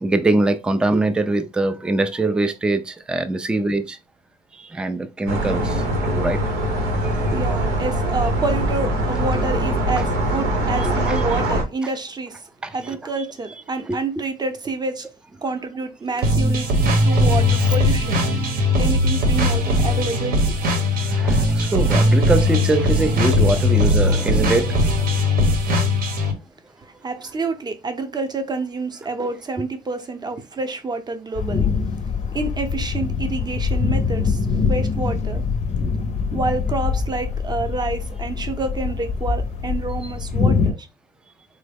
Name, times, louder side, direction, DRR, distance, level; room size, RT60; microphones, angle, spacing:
voice 1, 0.0-4.0 4.6-6.4 11.1-11.2 12.6-12.7 21.0-24.8 29.5-29.6, right 2 dB, 5° right, 0.3 m, -22 dB
sound 1, 5.3-11.6, right 1 dB, 90° right, 1.0 m, -22 dB
voice 2, 7.3-12.5 12.7-15.1 15.4-16.7 17.0-18.2 18.8-20.4 27.0-31.7 32.3-35.4 36.3-40.9, right 3 dB, 25° right, 0.7 m, -28 dB
sound 2, 16.2-26.3, left 1 dB, 60° right, 0.9 m, -19 dB
sound 3, 31.4-40.7, left 5 dB, 40° left, 0.5 m, -24 dB
3.6 x 2.0 x 3.4 m
cardioid pair, 110°, 17 cm